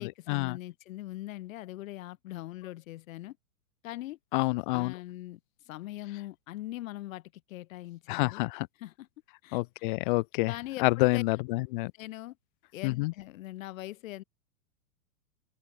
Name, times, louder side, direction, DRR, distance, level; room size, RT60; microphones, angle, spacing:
voice 1, 0.0-3.4 3.8-4.2 4.7-5.4 5.7-8.5 8.8-9.1 9.4-9.9 10.5-11.2 11.9-12.4 12.7-14.2, left 16 dB, 60° left, 3.6 m, -41 dB
voice 2, 4.3-4.9 8.1-8.7 9.5-10.5 10.8-11.9 12.8-13.1, left 23 dB, 40° left, 0.4 m, -28 dB
open air
hypercardioid pair, 105°, 44 cm